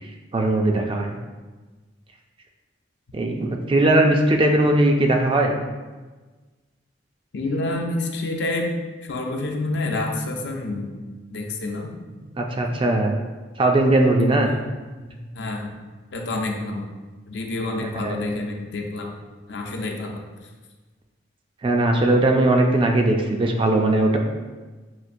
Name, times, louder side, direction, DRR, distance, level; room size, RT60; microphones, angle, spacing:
voice 1, 0.0-1.2 3.1-5.6 12.2-13.2 13.6-14.5 17.9-18.2 21.6-24.2, right 1 dB, 30° right, 2 dB, 0.3 m, -19 dB
voice 2, 7.3-8.7 9.0-10.9 11.3-11.9 14.5-14.6 15.1-15.8 16.1-16.9 17.3-19.1 19.5-20.2, left 2 dB, 65° left, 1 dB, 0.6 m, -28 dB
5.8 x 2.5 x 2.5 m, 1.3 s
head